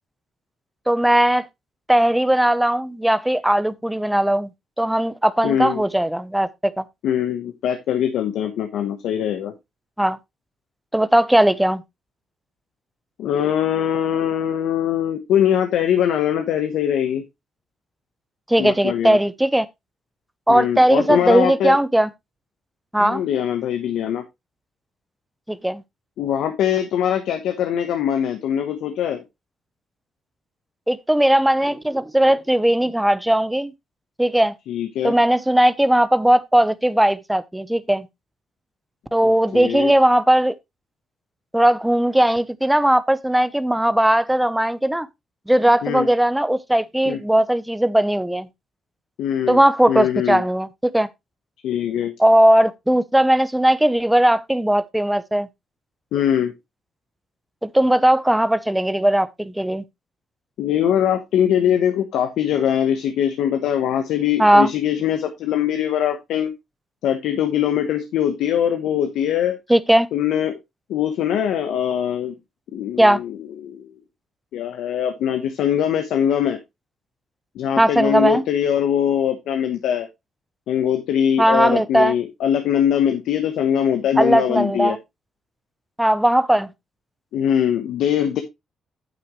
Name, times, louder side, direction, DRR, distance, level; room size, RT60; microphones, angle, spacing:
voice 1, 0.9-1.5 1.9-4.5 4.8-6.5 6.8-6.9 10.0-10.2 10.9-11.8 18.5-19.7 20.5-22.1 22.9-23.2 25.5-25.8 30.9-33.7 34.2-34.5 35.0-38.1 39.1-40.5 41.5-45.1 45.5-48.5 49.5-51.1 52.2-55.5 57.6-59.8 64.4-64.7 69.7-70.1 73.0-73.2 77.8-78.4 81.4-82.1 84.2-85.0 86.0-86.7, right 1 dB, 5° right, 0.8 m, -18 dB
voice 2, 5.4-5.8 7.0-9.5 13.2-17.2 18.6-19.2 20.5-21.8 23.0-24.2 26.2-29.2 34.7-35.2 39.2-39.9 45.8-46.1 47.1-47.2 49.2-49.6 49.9-50.4 51.6-52.1 56.1-56.5 60.6-66.5 67.0-69.6 70.1-70.6 70.9-72.3 72.7-73.9 74.5-76.6 77.5-80.1 80.7-85.0 87.3-88.4, left 9 dB, 80° left, 1.1 m, -22 dB
9.4 x 7.9 x 3.1 m
cardioid pair, 90°, 0 cm